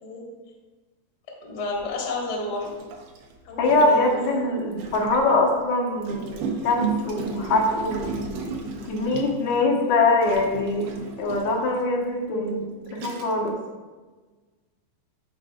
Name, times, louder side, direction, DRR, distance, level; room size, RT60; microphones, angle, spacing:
voice 1, 1.5-2.7 3.5-4.5 12.3-12.4, left 3 dB, 50° left, -3 dB, 1.2 m, -31 dB
Gurgling, 1.7-1.9 2.6-5.4 6.0-9.6 10.2-11.7 12.4-12.5 12.9-13.5, right 4 dB, 75° right, 1.9 m, -34 dB
voice 2, 3.6-8.3 8.9-10.9 11.2-12.6 12.9-13.6, left 2 dB, 85° left, -1 dB, 3.1 m, -23 dB
13.5 x 4.5 x 2.3 m, 1.3 s
omnidirectional pair, 4.4 m